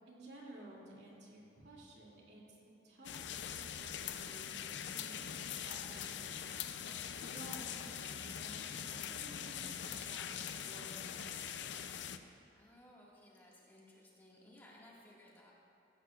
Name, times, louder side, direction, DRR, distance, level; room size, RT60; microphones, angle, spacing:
voice 1, 0.1-2.4 2.8-5.4 5.6-11.9, right 1 dB, 60° right, -3 dB, 2.7 m, -55 dB
sound 1, 3.0-12.2, left 8 dB, 65° left, 0.5 m, -43 dB
voice 2, 12.5-15.5, left 1 dB, 10° left, -5 dB, 1.9 m, -60 dB
15.5 x 15.0 x 2.5 m, 2.7 s
head